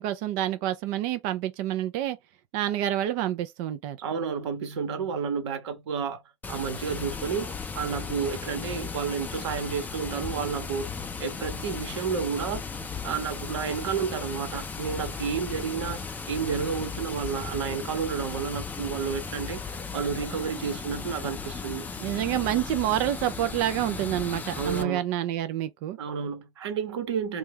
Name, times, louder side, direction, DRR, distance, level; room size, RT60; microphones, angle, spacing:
voice 1, 0.0-2.2 2.5-4.0 22.0-26.0, right 12 dB, 45° right, 0.5 m, -28 dB
voice 2, 4.0-6.2 6.5-7.5 7.7-10.9 11.2-12.6 13.0-16.0 16.3-19.6 19.9-21.9 24.6-25.0 26.0-27.4, right 6 dB, 65° right, 1.1 m, -31 dB
Water, 6.4-24.8, left 5 dB, 10° left, 0.4 m, -36 dB
2.7 x 2.3 x 3.4 m
hypercardioid pair, 105°, 15 cm